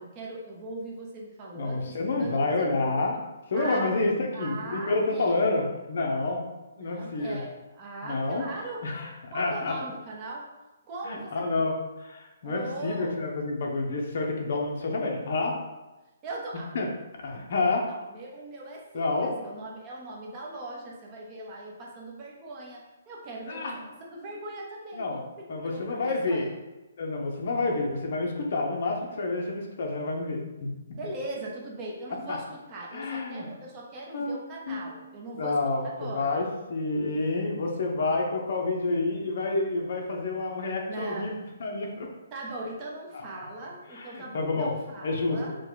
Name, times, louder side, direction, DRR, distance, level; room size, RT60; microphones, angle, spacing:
voice 1, 0.0-2.7 3.5-4.0 4.3-5.4 6.8-8.8 9.3-10.5 10.9-11.5 12.4-13.2 16.2-16.8 17.9-23.7 24.1-25.0 25.6-26.5 30.9-36.4 40.9-41.3 42.3-45.6, right 2 dB, 20° right, -3 dB, 0.8 m, -40 dB
voice 2, 1.5-3.2 3.5-6.4 6.8-7.4 8.0-8.5 8.8-9.8 11.0-15.6 16.7-16.9 17.2-17.9 18.9-19.3 23.5-23.8 24.9-25.2 25.5-26.5 27.0-30.7 32.3-32.4 32.9-33.5 34.1-34.4 34.7-34.9 35.3-42.1 43.1-43.2 43.9-44.7 45.0-45.6, left 3 dB, 50° left, 1 dB, 0.8 m, -29 dB
5.0 x 2.3 x 4.0 m, 1.1 s
hypercardioid pair, 165°, 0 cm